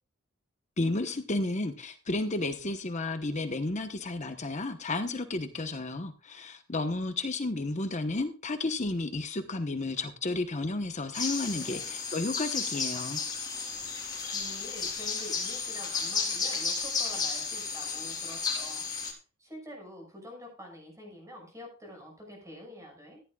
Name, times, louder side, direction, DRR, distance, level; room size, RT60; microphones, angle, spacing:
voice 1, 0.8-13.2, left 2 dB, 35° left, 8 dB, 1.0 m, -32 dB
sound 1, 11.1-19.1, left 5 dB, 20° left, 3.8 m, -33 dB
voice 2, 11.5-11.9 14.3-18.8 19.4-23.2, left 1 dB, 15° right, 1 dB, 6.1 m, -46 dB
15.0 x 11.0 x 2.4 m, 0.34 s
head